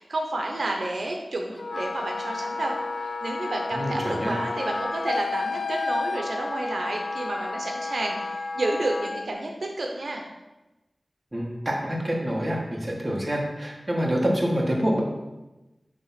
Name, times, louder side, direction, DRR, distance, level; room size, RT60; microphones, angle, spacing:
voice 1, 0.0-2.7 3.2-10.2, right 2 dB, 80° right, 1 dB, 0.7 m, -30 dB
Wind instrument woodwind instrument, 1.6-9.3, left 3 dB, 65° left, 0.3 m, -31 dB
voice 2, 3.7-4.3 11.3-15.0, equal, 20° right, -3 dB, 1.6 m, -26 dB
6.9 x 3.4 x 5.8 m, 1.0 s
wide cardioid pair, 80°, 0 cm